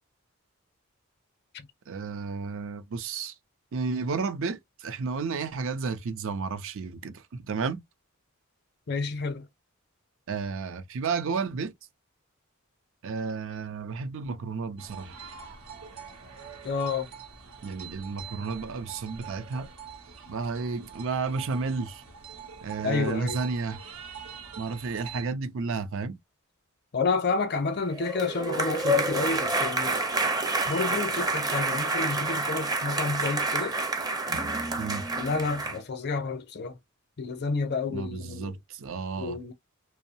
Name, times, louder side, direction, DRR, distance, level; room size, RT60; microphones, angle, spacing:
voice 1, 1.9-3.3 3.7-7.8 10.3-11.7 13.0-15.2 17.6-19.7 20.3-22.0 22.6-23.8 24.6-26.2 34.8-35.1 37.9-39.4, right 4 dB, 65° right, 0.5 m, -32 dB
voice 2, 8.9-9.5 16.6-17.1 22.8-23.4 26.9-30.0 30.7-33.8 35.2-36.7 37.2-38.5 39.2-39.5, left 4 dB, 50° left, 0.6 m, -30 dB
sound 1, 14.8-25.2, right 7 dB, 90° right, 0.8 m, -44 dB
sound 2, 27.9-35.8, right 2 dB, 20° right, 0.5 m, -28 dB
2.6 x 2.0 x 2.7 m
head